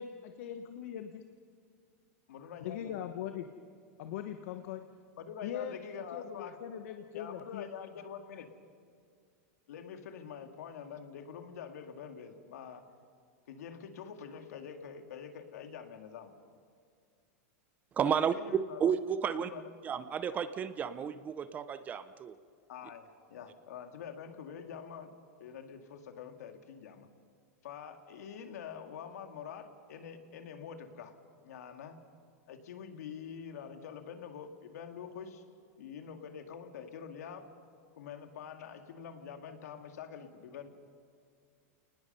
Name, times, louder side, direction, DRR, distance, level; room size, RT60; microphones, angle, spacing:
voice 1, 0.0-1.2 2.6-3.5 4.0-4.8 5.4-5.7 6.1-7.7, left 10 dB, 60° left, 7 dB, 1.1 m, -40 dB
voice 2, 2.3-3.1 5.2-6.6 7.1-8.5 9.7-12.8 13.5-16.3 18.1-18.9 19.3-19.7 22.7-25.1 25.4-27.1 27.6-31.1 31.4-32.0 32.5-35.4 35.8-37.4 38.0-40.7, left 7 dB, 85° left, 6 dB, 2.2 m, -46 dB
voice 3, 18.0-18.4 18.8-19.5 19.8-22.4, right 7 dB, 20° right, 13 dB, 0.5 m, -32 dB
29.0 x 19.5 x 5.5 m, 2.3 s
supercardioid pair, 160°, 8 cm